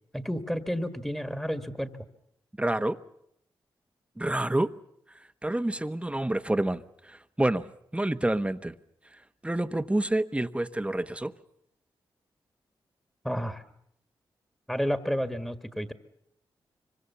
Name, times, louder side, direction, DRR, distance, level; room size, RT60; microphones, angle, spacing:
voice 1, 0.1-1.9 13.2-13.6 14.7-15.9, equal, 5° left, 1.8 m, -31 dB
voice 2, 2.6-3.0 4.2-4.7 5.4-7.6 7.9-8.7 9.4-11.3, right 1 dB, 15° right, 1.1 m, -28 dB
25.5 x 24.5 x 7.0 m
cardioid pair, 55°, 9 cm